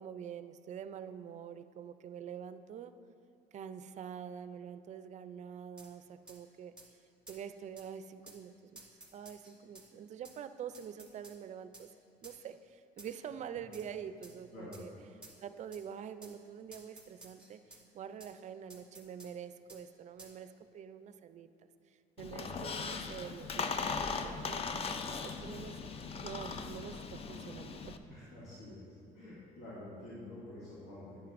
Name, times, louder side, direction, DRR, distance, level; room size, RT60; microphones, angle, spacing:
voice 1, 0.0-2.9 3.5-6.7 7.3-8.8 9.1-11.9 12.2-14.9 15.4-21.5 21.9-28.0, right 8 dB, 45° right, 11 dB, 0.4 m, -46 dB
sound 1, 5.8-5.9 6.3-6.4 6.8-6.9 7.3-7.4 7.8-7.9 8.3-8.4 8.8-9.9 10.2-10.4 10.7-11.4 11.7-11.9 12.2-12.4 13.0-13.3 13.7-13.9 14.2-14.4 14.7-14.9 15.2-15.4 15.7-15.8 16.2-16.4 16.7-17.8 18.2-18.3 18.7-19.3 19.7-19.8 20.2-20.4, right 2 dB, 5° right, 1.4 m, -54 dB
Squeak, 22.2-28.0, left 5 dB, 35° left, 0.5 m, -39 dB
voice 2, 28.1-31.2, left 1 dB, 75° left, -9 dB, 2.1 m, -48 dB
11.0 x 9.0 x 2.5 m, 2.6 s
cardioid pair, 110°, 17 cm